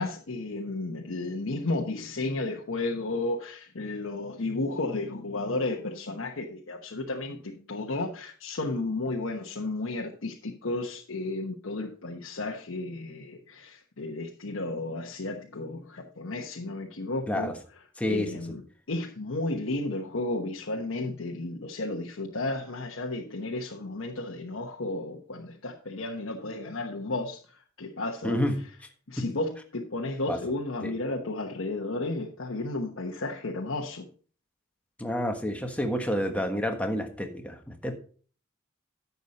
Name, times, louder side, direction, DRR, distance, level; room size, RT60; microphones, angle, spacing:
voice 1, 0.0-17.5 18.1-18.6 18.9-28.4 29.1-34.1, left 2 dB, 80° left, 1.1 m, -33 dB
voice 2, 18.0-18.3 28.2-28.5 30.3-30.4 30.8-30.9 35.0-38.0, equal, 5° left, 1.4 m, -29 dB
10.5 x 7.2 x 4.2 m
head